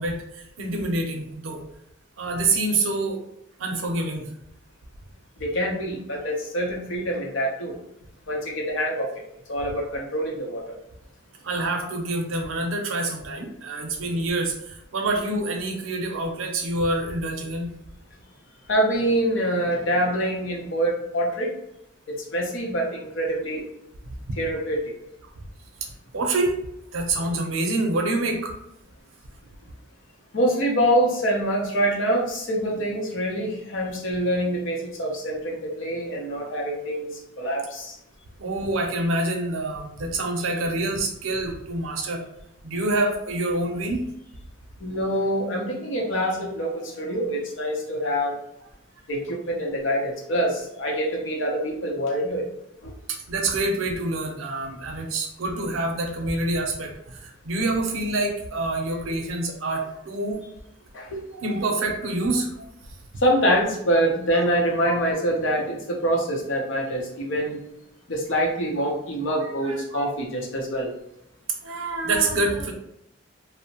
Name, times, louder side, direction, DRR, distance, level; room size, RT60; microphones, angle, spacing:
voice 1, 0.0-1.6 2.2-3.2 3.6-4.3 11.4-17.7 24.1-24.2 25.8-26.6 26.9-28.5 38.4-42.2 42.6-44.0 46.4-46.8 53.1-60.4 61.3-62.7 64.3-64.4 64.9-65.0 69.6-70.1 71.6-72.7, right 2 dB, 90° right, 3 dB, 0.5 m, -27 dB
voice 2, 5.4-7.8 8.3-9.1 9.5-10.8 18.7-21.5 22.1-23.6 24.4-24.9 30.3-38.0 44.8-48.4 49.1-52.5 52.8-52.9 60.9-61.2 63.2-67.6 68.1-70.9, equal, 75° left, 0 dB, 0.7 m, -25 dB
2.7 x 2.0 x 2.8 m, 0.79 s
head